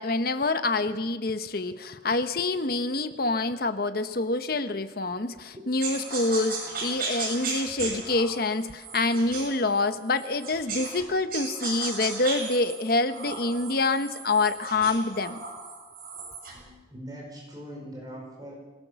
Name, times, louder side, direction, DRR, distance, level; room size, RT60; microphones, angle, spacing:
voice 1, 0.0-15.4, left 3 dB, 55° left, 10 dB, 1.0 m, -26 dB
sound 1, 5.8-11.0 11.3-16.6, right 4 dB, 50° right, 7.5 m, -36 dB
voice 2, 6.6-7.0 9.1-9.2 16.5-18.5, equal, 20° right, -1 dB, 4.9 m, -43 dB
25.0 x 18.0 x 7.0 m, 1.3 s
head